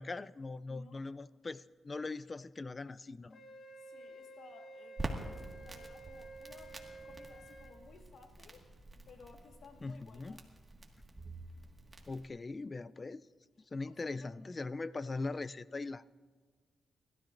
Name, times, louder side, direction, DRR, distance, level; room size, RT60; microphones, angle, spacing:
voice 1, 0.0-3.4 9.8-10.4 12.1-13.2 13.7-16.1, left 3 dB, 30° left, 16 dB, 0.4 m, -41 dB
voice 2, 0.7-1.1 3.9-8.7 9.0-10.4 13.8-14.3, left 4 dB, 75° left, 3 dB, 1.6 m, -58 dB
Wind instrument woodwind instrument, 3.3-7.8, right 2 dB, 60° left, 1.1 m, -51 dB
Crackle, 5.0-12.3, right 2 dB, 20° right, 1.8 m, -47 dB
29.5 x 13.0 x 2.6 m, 1.5 s
cardioid pair, 95°, 0 cm